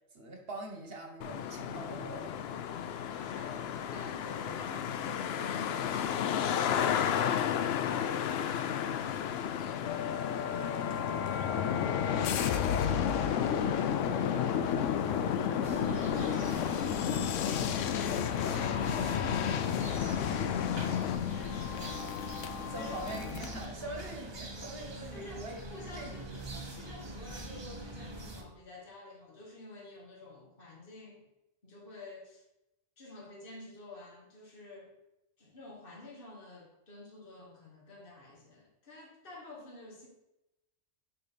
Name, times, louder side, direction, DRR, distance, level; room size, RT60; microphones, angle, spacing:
voice 1, 0.1-2.4 21.6-21.7 22.7-25.6 25.9-26.2 26.5-26.7, right 2 dB, 55° right, 2 dB, 1.3 m, -43 dB
Traffic noise roadway noise, 1.2-21.2, left 8 dB, 65° left, 0.7 m, -34 dB
voice 2, 3.1-12.8 18.0-20.9 21.3-22.0 22.4-23.1 23.8-24.0 25.1-31.3 31.6-32.4 33.0-34.9 35.4-40.1, left 2 dB, 50° left, -2 dB, 1.8 m, -50 dB
sound 1, 9.8-23.7, left 8 dB, 90° left, 1.0 m, -32 dB
sound 2, 15.6-28.4, right 1 dB, 25° right, 0.7 m, -44 dB
6.6 x 4.8 x 5.1 m, 0.92 s
omnidirectional pair, 1.2 m